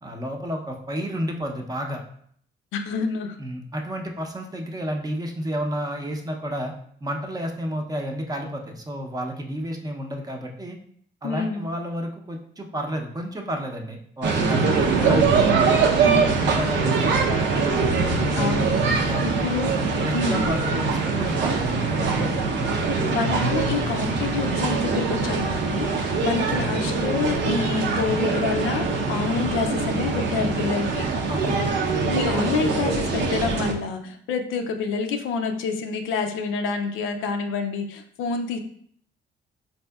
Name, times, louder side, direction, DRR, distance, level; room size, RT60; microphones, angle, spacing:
voice 1, 0.0-2.0 3.4-6.7 7.0-10.8 11.2-15.2 15.6-19.3 20.0-22.3 26.4-26.7 31.3-31.8, equal, 20° right, 2 dB, 0.6 m, -31 dB
voice 2, 2.7-3.4 11.2-11.7 16.0-16.3 18.3-18.8 19.4-19.7 20.1-20.5 23.1-31.1 32.1-38.6, left 5 dB, 90° left, 6 dB, 0.5 m, -27 dB
sound 1, 14.2-33.7, right 4 dB, 65° right, 0.6 m, -23 dB
4.1 x 2.7 x 2.3 m, 0.62 s
cardioid pair, 90°, 20 cm